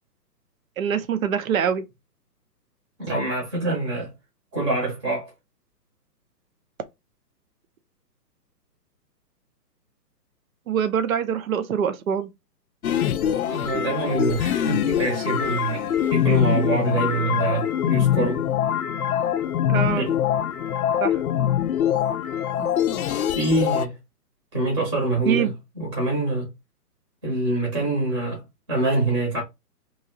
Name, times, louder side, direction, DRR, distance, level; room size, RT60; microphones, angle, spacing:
voice 1, 0.8-1.8 10.7-12.3 19.7-20.1 21.0-21.2 25.3-25.5, right 8 dB, 55° right, 0.7 m, -24 dB
voice 2, 3.0-4.1 4.5-5.3 13.5-18.4 19.9-20.1 22.6-22.7 23.3-23.9 24.5-26.5 27.2-28.4 28.7-29.4, right 2 dB, 15° right, 0.8 m, -25 dB
sound 1, 12.8-23.9, left 10 dB, 60° left, 0.5 m, -23 dB
3.1 x 2.7 x 3.7 m
hypercardioid pair, 165°, 49 cm